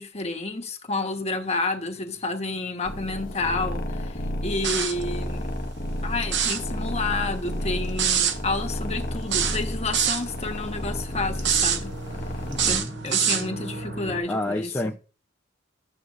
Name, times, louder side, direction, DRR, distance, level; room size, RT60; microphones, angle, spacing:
voice 1, 0.0-4.2 4.4-5.5 6.0-11.9 12.7-12.8 13.0-14.7, left 3 dB, 35° left, 1.2 m, -30 dB
sound 1, 1.2-14.2, right 1 dB, 80° right, 5.2 m, -42 dB
sound 2, 2.8-12.8, equal, 50° left, 1.3 m, -32 dB
sound 3, 4.6-5.0 6.2-6.6 8.0-8.4 9.3-10.2 11.4-11.8 12.5-13.5, right 8 dB, 60° right, 1.0 m, -24 dB
voice 2, 12.4-12.9 14.3-15.0, left 1 dB, 15° left, 0.6 m, -29 dB
14.0 x 7.8 x 2.5 m
head